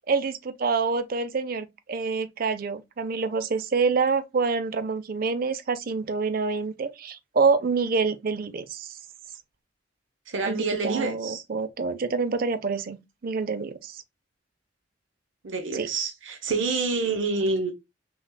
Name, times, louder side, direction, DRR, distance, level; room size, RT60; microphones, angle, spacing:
voice 1, 0.1-9.0 10.4-13.0 13.2-14.0 15.7-15.9, right 4 dB, 50° right, 0.5 m, -27 dB
voice 2, 10.3-11.4 15.4-17.7, right 3 dB, 85° right, 0.8 m, -27 dB
5.8 x 2.3 x 2.2 m
head